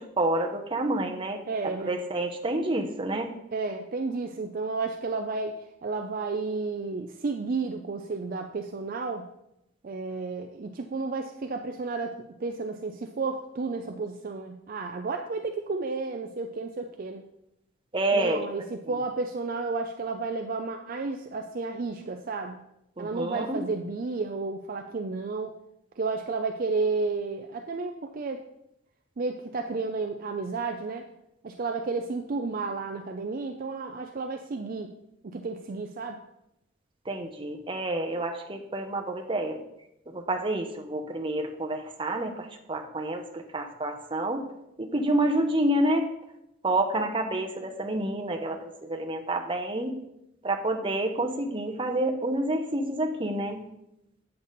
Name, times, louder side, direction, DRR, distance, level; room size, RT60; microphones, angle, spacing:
voice 1, 0.0-1.4 1.8-3.3 17.9-18.4 23.0-23.6 37.1-39.6 40.1-44.4 44.8-46.1 46.6-49.9 50.4-53.6, right 1 dB, 25° right, 4 dB, 0.8 m, -28 dB
voice 2, 1.5-2.0 3.5-9.3 9.8-17.2 18.1-22.6 23.0-25.6 26.0-28.4 29.2-31.1 31.4-34.9 35.2-36.2, right 4 dB, 45° right, 4 dB, 0.4 m, -32 dB
8.2 x 6.7 x 4.0 m, 0.84 s
head